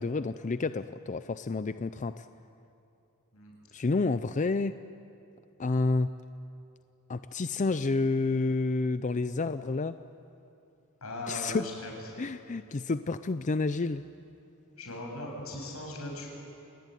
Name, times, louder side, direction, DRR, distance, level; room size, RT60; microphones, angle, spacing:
voice 1, 0.0-2.3 3.7-4.8 5.6-6.1 7.1-9.9 11.3-11.7 12.2-14.0, left 3 dB, 35° left, 12 dB, 0.5 m, -29 dB
voice 2, 11.0-11.9 14.8-16.3, left 1 dB, 90° left, 0 dB, 7.5 m, -38 dB
29.0 x 20.0 x 9.2 m, 2.8 s
head